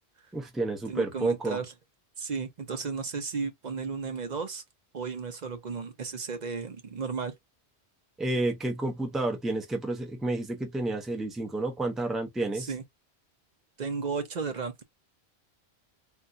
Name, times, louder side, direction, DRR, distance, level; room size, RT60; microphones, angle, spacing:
voice 1, 0.3-1.6 8.2-12.7, right 2 dB, ahead, 0.6 m, -30 dB
voice 2, 0.9-1.7 2.2-4.6 4.9-7.3 12.5-12.8 13.8-14.8, right 5 dB, 45° right, 0.8 m, -34 dB
3.7 x 2.2 x 2.6 m
omnidirectional pair, 1.1 m